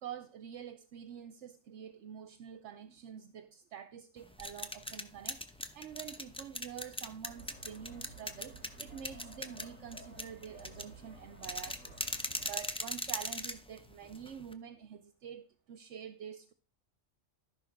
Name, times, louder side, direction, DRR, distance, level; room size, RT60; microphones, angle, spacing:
voice 1, 0.0-12.0 12.4-16.5, right 9 dB, 70° right, 1.0 m, -47 dB
sound 1, 4.2-14.5, left 1 dB, 5° left, 0.6 m, -41 dB
sound 2, 7.3-12.5, right 2 dB, 85° left, 3.7 m, -54 dB
13.0 x 5.5 x 5.2 m
omnidirectional pair, 1.3 m